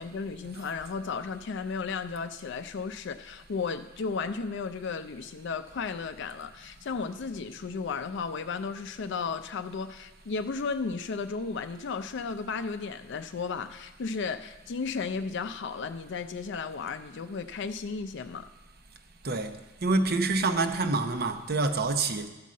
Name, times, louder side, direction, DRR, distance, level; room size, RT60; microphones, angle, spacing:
voice 1, 0.0-18.5, left 5 dB, 65° left, 9 dB, 0.4 m, -34 dB
voice 2, 19.8-22.3, right 3 dB, 50° right, 8 dB, 0.8 m, -26 dB
13.5 x 5.4 x 7.4 m, 1.1 s
head